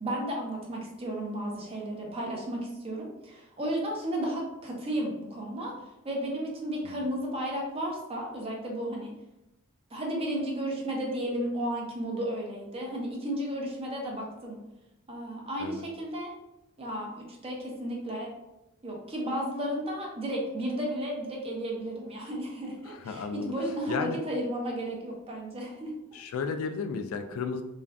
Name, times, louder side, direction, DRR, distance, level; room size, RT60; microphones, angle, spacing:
voice 1, 0.0-5.7 6.0-9.1 9.9-14.6 15.1-16.3 16.8-18.3 18.8-25.9, right 1 dB, 30° right, -1 dB, 0.6 m, -33 dB
voice 2, 22.9-23.5 23.9-24.2 26.1-27.6, left 5 dB, 75° left, 7 dB, 0.3 m, -33 dB
2.4 x 2.2 x 3.3 m, 0.94 s
head